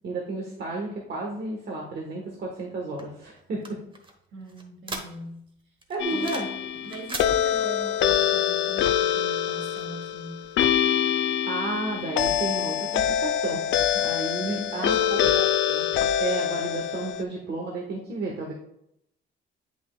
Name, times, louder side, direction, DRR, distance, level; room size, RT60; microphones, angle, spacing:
voice 1, 0.0-3.8 5.9-6.5 11.5-15.9 16.2-18.5, right 3 dB, 55° right, -1 dB, 1.3 m, -32 dB
sound 1, 3.0-5.5 5.8-6.6 6.8-7.3, right 2 dB, 25° right, 1.1 m, -38 dB
voice 2, 4.3-5.4 6.1-6.3 6.8-10.5 14.3-15.3, right 2 dB, 75° right, 0 dB, 2.3 m, -41 dB
sound 2, 6.0-17.2, left 10 dB, 70° left, 0.4 m, -25 dB
8.0 x 5.7 x 2.3 m, 0.74 s
cardioid pair, 90°, 20 cm